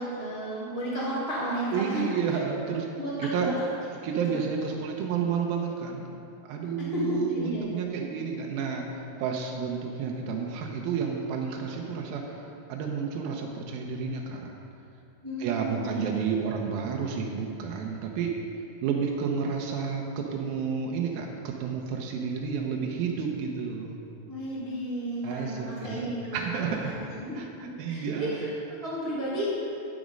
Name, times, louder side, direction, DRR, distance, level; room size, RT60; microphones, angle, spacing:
voice 1, 0.0-2.4 2.9-3.1 3.4-3.5 6.8-7.7 15.2-16.1 24.3-29.8, equal, 55° right, -9 dB, 0.6 m, -33 dB
voice 2, 1.7-2.9 3.2-3.5 4.0-6.0 6.5-14.5 15.4-18.3 18.8-24.0 25.2-26.9 27.4-28.3, right 6 dB, 80° right, 1 dB, 2.5 m, -31 dB
12.0 x 6.2 x 5.1 m, 2.8 s
omnidirectional pair, 4.4 m